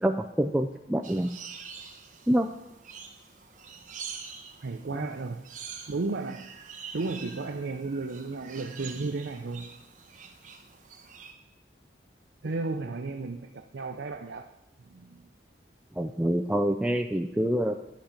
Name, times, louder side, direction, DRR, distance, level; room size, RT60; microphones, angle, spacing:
voice 1, 0.0-1.3 2.3-2.5 4.9-5.1 15.9-17.7, equal, 5° right, 3 dB, 0.3 m, -26 dB
sound 1, 1.0-11.3, right 6 dB, 45° right, 1.0 m, -45 dB
voice 2, 4.6-5.4 5.9-6.5 6.9-9.7 12.4-14.5 14.8-15.2, right 3 dB, 80° right, 5 dB, 0.6 m, -34 dB
10.5 x 5.1 x 7.2 m, 0.92 s
head